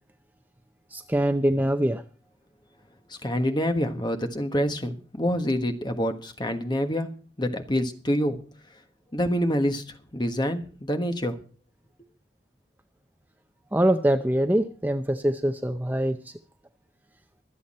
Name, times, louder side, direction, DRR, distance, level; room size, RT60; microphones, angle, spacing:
voice 1, 0.9-2.0 13.7-16.3, right 1 dB, 10° right, 0.6 m, -24 dB
voice 2, 3.1-7.1 7.4-8.4 9.1-11.4, equal, 25° left, 1.4 m, -26 dB
24.5 x 8.3 x 4.3 m
head